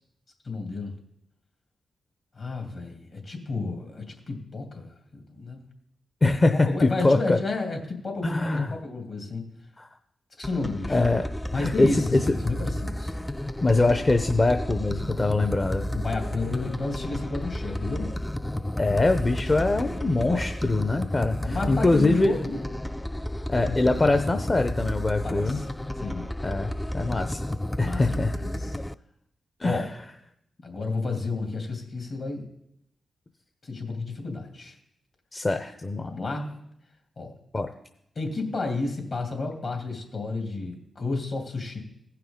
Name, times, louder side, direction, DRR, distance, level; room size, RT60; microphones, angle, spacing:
voice 1, 0.4-0.9 2.3-5.6 6.5-7.8 8.0-9.5 10.4-11.0 11.5-13.1 15.9-18.1 18.8-19.0 19.3-20.6 21.4-22.7 23.7-23.8 25.2-25.7 26.0-26.3 27.8-28.7 29.6-29.9 30.6-32.5 33.6-34.7 36.0-36.5 37.2-37.3 38.1-41.8, left 3 dB, 60° left, 2 dB, 2.8 m, -32 dB
voice 2, 6.2-7.4 8.2-8.7 9.8-9.9 10.9-11.3 11.5-12.4 13.6-15.9 18.8-22.3 23.5-25.6 26.4-27.4 27.8-28.3 29.6-29.8 35.3-36.2 37.5-37.7, left 2 dB, 35° left, 6 dB, 0.7 m, -23 dB
sound 1, 10.4-28.9, left 1 dB, 10° left, 0.4 m, -32 dB
16.5 x 5.8 x 3.8 m, 0.75 s
supercardioid pair, 45°, 0 cm